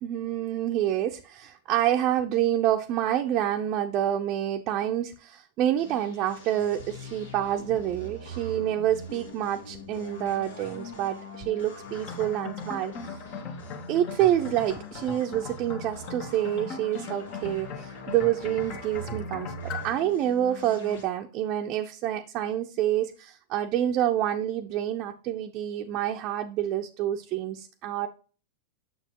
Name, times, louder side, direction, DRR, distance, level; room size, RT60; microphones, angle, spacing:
voice 1, 0.0-13.2 13.9-28.1, right 11 dB, 45° right, 0.6 m, -27 dB
sound 1, 5.8-21.0, left 1 dB, 80° left, 1.9 m, -43 dB
sound 2, 11.8-20.0, left 5 dB, 45° left, 1.2 m, -40 dB
7.0 x 6.4 x 2.9 m
hypercardioid pair, 105°, 0 cm